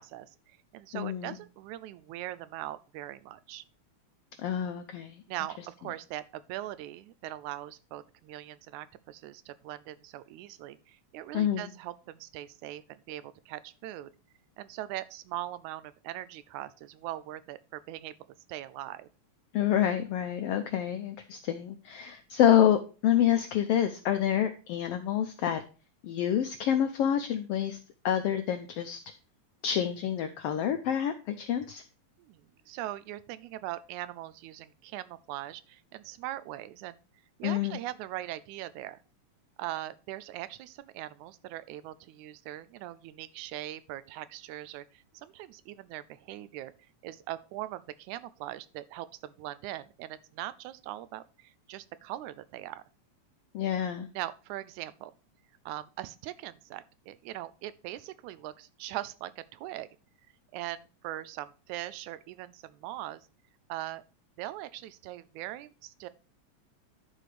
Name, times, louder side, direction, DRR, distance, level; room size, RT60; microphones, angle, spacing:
voice 1, 0.0-3.6 5.3-14.1 14.6-18.1 18.5-19.1 32.2-37.0 37.4-39.0 39.6-46.7 47.0-52.8 54.1-55.1 55.7-59.9 60.5-63.3 63.7-64.0 64.4-66.1, right 14 dB, 90° right, 15 dB, 2.0 m, -41 dB
voice 2, 0.9-1.4 4.4-5.2 11.3-11.7 19.5-25.6 26.0-27.8 28.0-29.0 29.6-31.8 37.4-37.8 53.5-54.1, left 10 dB, 90° left, 8 dB, 1.3 m, -27 dB
11.0 x 4.3 x 4.9 m, 0.35 s
omnidirectional pair, 3.3 m